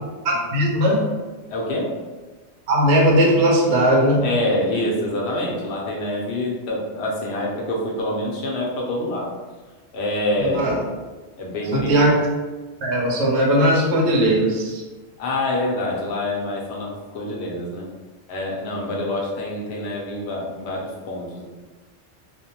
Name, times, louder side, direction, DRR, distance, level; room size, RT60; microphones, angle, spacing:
voice 1, 0.2-1.0 2.7-4.2 10.4-10.8 11.7-12.1 12.8-14.8, equal, 75° right, -1 dB, 0.9 m, -18 dB
voice 2, 1.5-1.9 4.2-9.3 9.9-10.7 11.4-12.0 15.2-17.9 18.3-21.4, left 1 dB, 75° left, -2 dB, 0.9 m, -26 dB
2.4 x 2.1 x 2.8 m, 1.3 s
omnidirectional pair, 1.2 m